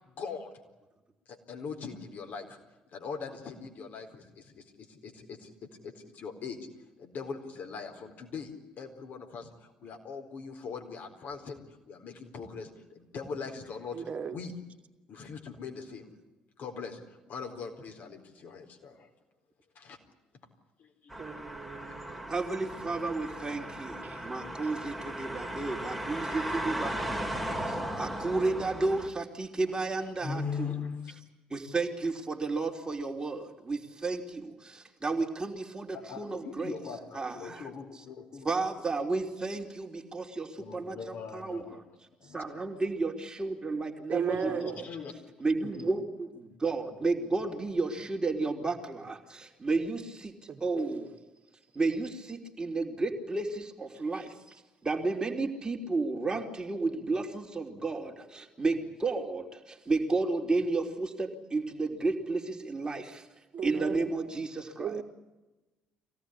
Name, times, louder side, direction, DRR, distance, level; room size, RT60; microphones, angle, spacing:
voice 1, 0.2-0.5 1.3-2.6 2.9-5.5 5.8-6.6 7.0-14.5 15.1-16.1 16.6-17.0 17.3-19.1 19.8-20.0 20.8-21.5 30.2-31.1 35.9-38.5 40.6-41.8 42.2-42.4 44.4-45.1 45.6-45.9, left 5 dB, 50° left, 4 dB, 4.3 m, -41 dB
voice 2, 13.9-14.4 21.2-22.2 24.0-24.2 44.1-44.7 50.5-50.6 63.5-64.1 64.8-65.0, right 7 dB, 40° right, 4 dB, 2.6 m, -35 dB
sound 1, 21.1-29.1, right 1 dB, ahead, 2.9 m, -37 dB
voice 3, 22.3-27.2 27.5-30.9 31.5-36.7 37.1-37.7 38.4-41.8 42.3-44.9 45.4-51.1 51.7-54.3 54.8-63.3 63.6-65.0, right 3 dB, 20° right, 1 dB, 3.2 m, -32 dB
24.5 x 18.0 x 10.0 m, 1.1 s
figure-of-eight pair, 50°, 4 cm